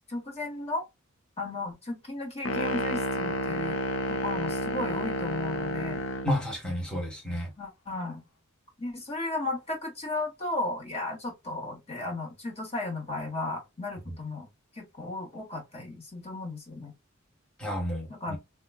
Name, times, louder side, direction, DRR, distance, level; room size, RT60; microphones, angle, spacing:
voice 1, 0.1-0.8 1.4-3.8 4.1-6.0 7.6-8.2 8.8-14.5 14.7-16.9 18.1-18.4, left 2 dB, 30° left, 1.2 m, -35 dB
sound 1, 2.4-6.4, left 1 dB, 70° left, 0.6 m, -30 dB
voice 2, 6.2-7.5 17.6-18.4, left 1 dB, 5° left, 1.2 m, -31 dB
4.8 x 2.2 x 2.3 m
head